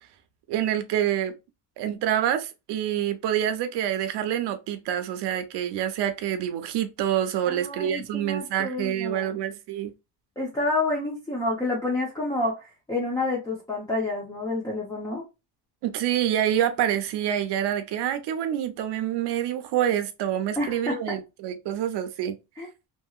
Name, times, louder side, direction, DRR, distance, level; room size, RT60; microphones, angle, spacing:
voice 1, 0.5-1.3 1.8-9.9 15.8-22.4, right 10 dB, 75° right, 0.7 m, -27 dB
voice 2, 7.5-9.4 10.4-15.2 20.6-21.2 22.6-22.7, left 2 dB, 10° left, 0.5 m, -29 dB
2.9 x 2.8 x 2.3 m
cardioid pair, 170°, 41 cm